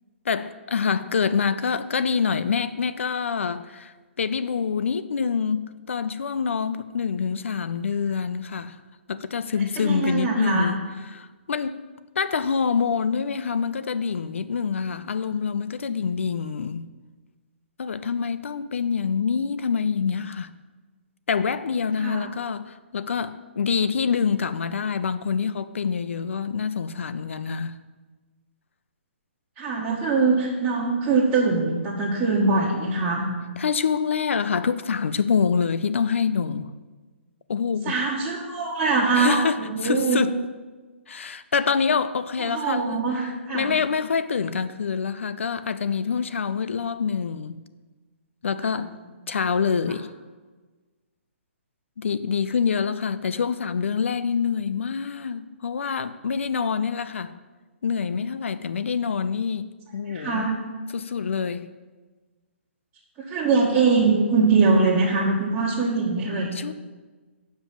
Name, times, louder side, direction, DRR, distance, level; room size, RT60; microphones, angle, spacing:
voice 1, 0.3-8.8 9.1-11.8 12.2-16.9 17.8-20.5 21.3-27.8 33.6-36.7 37.5-38.0 39.1-40.4 41.1-43.0 43.5-47.6 48.4-48.9 49.3-50.1 52.0-57.3 57.8-60.5 60.9-61.7 66.5-66.7, left 6 dB, 75° left, 0.5 m, -26 dB
voice 2, 9.8-10.7 22.0-22.2 29.6-33.3 37.8-40.2 42.4-43.7 48.8-48.9 60.1-60.5 63.3-66.5, right 4 dB, 20° right, 1.4 m, -22 dB
7.2 x 5.3 x 7.0 m
hypercardioid pair, 145°, 7 cm